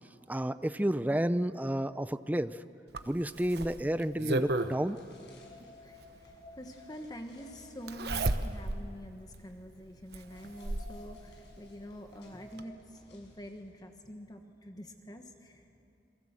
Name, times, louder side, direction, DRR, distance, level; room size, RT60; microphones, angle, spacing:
voice 1, 0.3-2.6 3.1-5.0, right 1 dB, 10° right, 13 dB, 0.5 m, -31 dB
Zipper (clothing), 2.9-4.7 6.2-6.3 7.9-8.9 9.3-9.4 10.1-11.0 12.2-12.3 12.6-12.7, right 2 dB, 60° right, 1.0 m, -32 dB
sound 1, 3.9-13.9, left 2 dB, 75° left, 6.2 m, -56 dB
voice 2, 5.6-15.8, equal, 20° left, 5 dB, 1.3 m, -46 dB
28.0 x 22.5 x 7.5 m, 2.7 s
head